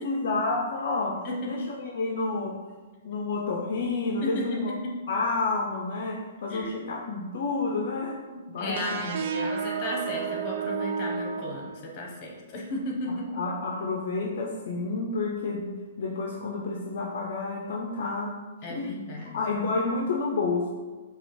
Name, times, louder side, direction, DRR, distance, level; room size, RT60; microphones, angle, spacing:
voice 1, 0.0-2.6 3.0-4.7 5.1-8.2 8.5-9.1 13.4-18.4 18.7-19.0 19.3-20.7, left 3 dB, 60° left, -1 dB, 0.4 m, -30 dB
voice 2, 1.2-1.6 4.2-4.9 6.5-6.8 8.3-13.4 18.6-19.4, left 1 dB, 35° left, 0 dB, 1.0 m, -34 dB
sound 1, 8.8-12.3, right 6 dB, 50° right, 0.3 m, -32 dB
4.9 x 2.3 x 3.2 m, 1.3 s
hypercardioid pair, 125°, 0 cm